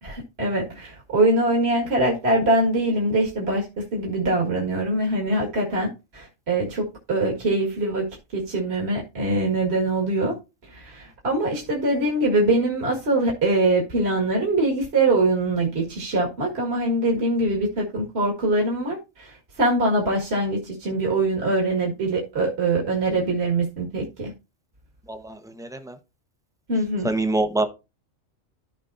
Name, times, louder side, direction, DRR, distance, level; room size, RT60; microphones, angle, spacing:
voice 1, 0.0-10.4 10.6-24.3 26.7-27.1, right 2 dB, 50° right, 2.2 m, -23 dB
voice 2, 25.1-25.9 27.0-27.7, right 2 dB, 5° right, 0.8 m, -25 dB
13.5 x 5.2 x 2.6 m
omnidirectional pair, 1.4 m